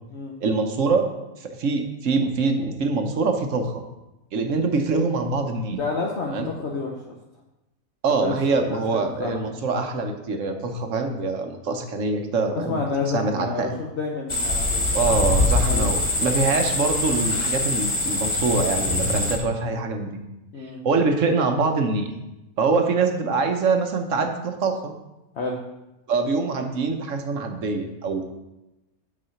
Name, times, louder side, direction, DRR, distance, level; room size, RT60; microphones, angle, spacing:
voice 1, 0.4-1.1 1.4-3.8 4.3-5.8 6.3-6.5 8.0-12.8 13.1-13.7 14.9-20.2 20.8-22.1 22.6-24.9 26.1-28.3, right 4 dB, 60° right, 5 dB, 1.2 m, -24 dB
voice 2, 5.8-7.0 8.2-9.6 12.5-15.3 15.5-15.8 20.5-20.8 25.3-25.6, left 4 dB, 50° left, -1 dB, 1.1 m, -30 dB
sound 1, 14.3-19.4, left 2 dB, 25° left, 1.0 m, -23 dB
8.1 x 4.8 x 5.7 m, 0.95 s
omnidirectional pair, 1.6 m